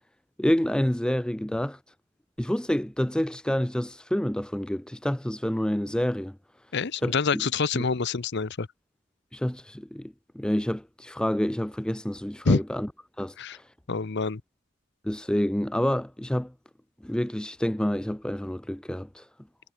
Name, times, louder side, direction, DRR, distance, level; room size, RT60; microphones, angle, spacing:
voice 1, 0.4-1.8 2.4-6.4 7.0-7.4 7.7-7.8 9.3-12.9 13.2-13.6 15.0-16.5 17.0-19.3, equal, 5° left, 0.4 m, -28 dB
voice 2, 6.7-8.7 12.4-12.6 13.4-13.6 13.9-14.4, left 4 dB, 50° left, 0.7 m, -26 dB
head